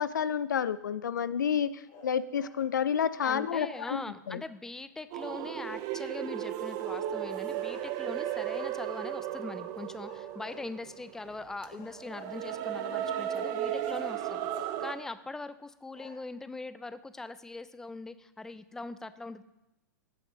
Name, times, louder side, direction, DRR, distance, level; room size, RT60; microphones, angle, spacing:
voice 1, 0.0-4.0 4.3-4.4, left 8 dB, 80° left, 16 dB, 0.4 m, -30 dB
sound 1, 1.9-2.7 3.2-4.3 7.6-8.9 10.0-11.1 11.7-12.8 14.2-15.2 15.6-15.7 15.9-16.2, left 4 dB, 40° left, 1.7 m, -51 dB
voice 2, 3.2-19.4, left 3 dB, 5° left, 13 dB, 0.4 m, -41 dB
sound 2, 5.1-14.9, right 11 dB, 40° right, 0.6 m, -35 dB
16.0 x 6.0 x 2.7 m, 0.95 s
hypercardioid pair, 105°, 10 cm